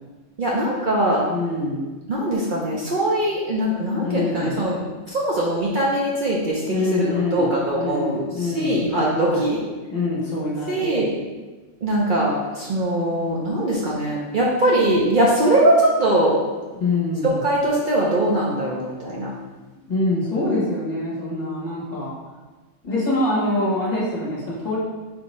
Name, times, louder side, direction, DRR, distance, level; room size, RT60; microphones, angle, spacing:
voice 1, 0.4-1.3 2.1-4.8 5.1-9.6 10.7-11.1 11.8-16.4 17.2-19.3, right 1 dB, 50° right, -5 dB, 0.7 m, -21 dB
voice 2, 1.3-1.9 4.0-4.6 6.7-7.5 7.8-9.4 9.9-11.0 16.7-17.4 19.9-22.1 22.8-24.8, left 2 dB, 35° left, -7 dB, 1.2 m, -25 dB
4.4 x 2.8 x 4.2 m, 1.2 s
omnidirectional pair, 1.2 m